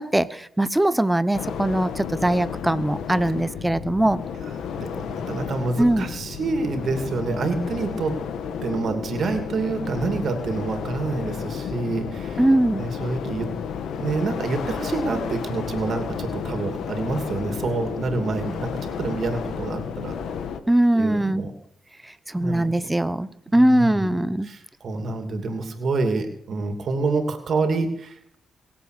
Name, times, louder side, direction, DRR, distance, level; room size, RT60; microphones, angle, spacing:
voice 1, 0.0-4.2 5.8-6.0 12.4-12.9 20.7-21.5 22.0-24.5, right 1 dB, 10° right, 15 dB, 0.9 m, -21 dB
sound 1, 1.3-20.6, left 7 dB, 85° left, 1.4 m, -32 dB
voice 2, 4.7-8.2 8.6-12.4 12.8-13.5 14.0-20.1 20.9-21.5 22.4-22.8 23.5-28.3, right 3 dB, 60° right, 6 dB, 2.8 m, -27 dB
23.0 x 8.0 x 6.7 m, 0.71 s
cardioid pair, 70°, 0 cm